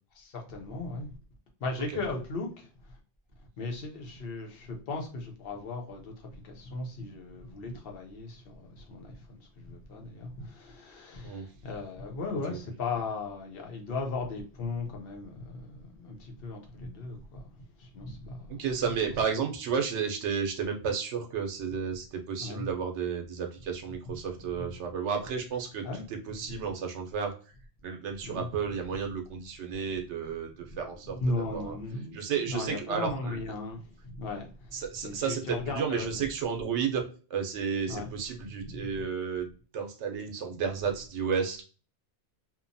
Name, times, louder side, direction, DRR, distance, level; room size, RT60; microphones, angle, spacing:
voice 1, 0.2-1.2 1.6-3.0 3.4-18.7 19.0-19.1 22.4-22.7 25.8-26.1 28.2-28.5 30.7-30.8 31.0-36.2 37.9-38.1 38.6-38.8, left 3 dB, 60° left, 0.9 m, -37 dB
voice 2, 18.5-27.5 27.8-31.8 32.1-33.4 34.7-39.5 39.7-41.6, right 6 dB, 85° right, 0.9 m, -32 dB
2.8 x 2.1 x 2.5 m
omnidirectional pair, 1.1 m